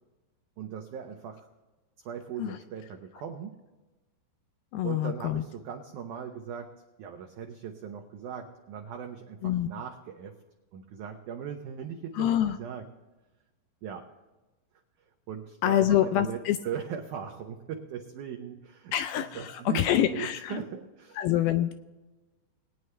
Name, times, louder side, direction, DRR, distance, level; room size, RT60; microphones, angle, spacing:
voice 1, 0.6-1.5 2.0-3.6 4.8-6.7 7.0-10.4 10.7-12.9 13.8-14.1 15.3-21.2, right 8 dB, 85° right, 4 dB, 1.7 m, -39 dB
voice 2, 4.7-5.4 9.4-9.7 12.1-12.6 15.6-16.6 18.9-20.6 21.2-21.7, left 11 dB, 85° left, 9 dB, 2.2 m, -26 dB
20.5 x 9.4 x 3.3 m, 1.1 s
omnidirectional pair, 4.6 m